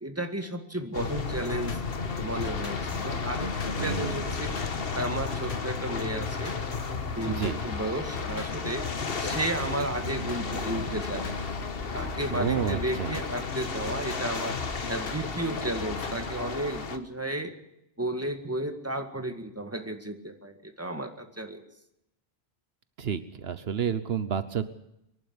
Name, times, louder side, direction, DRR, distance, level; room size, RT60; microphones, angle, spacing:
voice 1, 0.0-1.8 2.2-4.5 5.0-6.5 7.2-8.9 9.1-11.3 11.9-14.6 14.9-17.5 18.0-21.6, right 1 dB, 15° right, 6 dB, 2.0 m, -33 dB
sound 1, 0.9-17.0, left 5 dB, 65° left, 1.6 m, -34 dB
sound 2, 1.3-16.5, left 3 dB, 85° left, 2.1 m, -38 dB
voice 2, 3.8-4.2 7.4-7.6 12.3-13.1 23.0-24.7, right 7 dB, 75° right, 13 dB, 1.2 m, -30 dB
24.0 x 11.5 x 9.6 m, 0.84 s
omnidirectional pair, 1.1 m